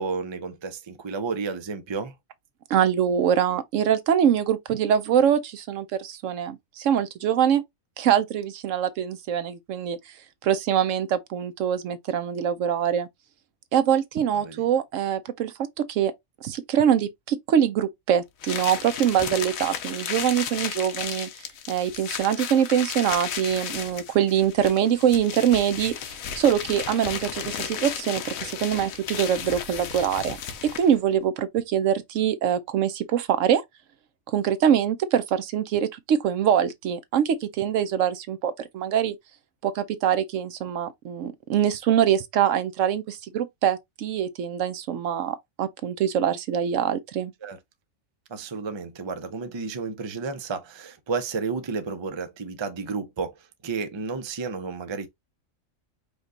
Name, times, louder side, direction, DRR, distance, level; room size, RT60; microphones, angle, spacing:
voice 1, 0.0-2.1 14.3-14.6 47.4-47.6 48.3-55.1, right 4 dB, 30° right, 0.5 m, -32 dB
voice 2, 2.7-7.6 8.0-10.1 10.4-13.1 13.7-16.1 16.4-30.4 30.6-33.6 34.3-39.2 39.6-47.3, right 9 dB, 75° right, 0.9 m, -24 dB
sound 1, 18.4-31.0, left 8 dB, 85° left, 1.2 m, -34 dB
5.1 x 2.3 x 3.8 m
omnidirectional pair, 1.4 m